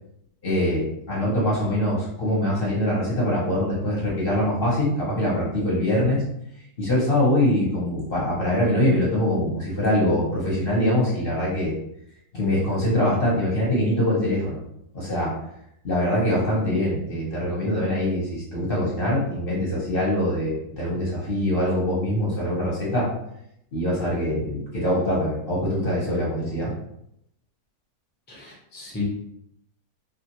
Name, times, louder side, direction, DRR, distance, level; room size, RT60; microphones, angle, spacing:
voice 1, 0.4-6.2 6.8-11.7 12.3-14.6 14.9-15.4 15.8-23.1 23.7-26.7, left 1 dB, 45° left, -5 dB, 0.9 m, -23 dB
voice 2, 28.3-29.0, left 4 dB, 15° left, -5 dB, 0.4 m, -34 dB
2.6 x 2.4 x 2.9 m, 0.75 s
omnidirectional pair, 1.6 m